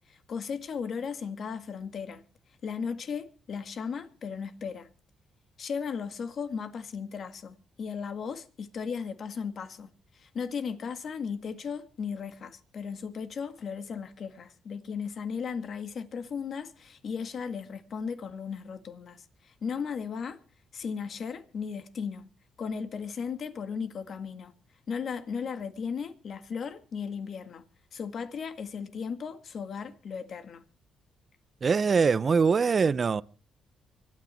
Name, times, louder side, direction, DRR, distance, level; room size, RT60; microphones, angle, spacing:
voice 1, 0.1-2.2 2.6-4.9 5.6-20.4 20.7-22.3 22.6-24.5 24.9-27.6 27.9-30.6, left 6 dB, 55° left, 1.8 m, -36 dB
voice 2, 31.6-33.2, right 5 dB, 40° right, 0.7 m, -23 dB
25.0 x 9.6 x 4.3 m
cardioid pair, 90°, 0 cm